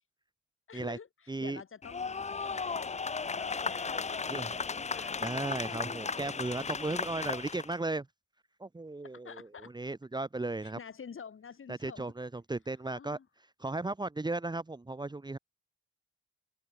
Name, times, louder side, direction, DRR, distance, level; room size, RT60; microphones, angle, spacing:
voice 1, 0.7-5.7 6.8-7.1 9.2-9.7 10.6-12.1 12.7-13.3, left 6 dB, 45° left, 7.9 m, -49 dB
voice 2, 1.3-1.6 4.3-4.5 5.2-8.1 8.6-10.8 11.7-13.2 13.6-15.4, right 2 dB, 15° right, 1.8 m, -36 dB
sound 1, 1.8-7.7, left 5 dB, 20° left, 0.8 m, -35 dB
open air
wide cardioid pair, 155°, 30 cm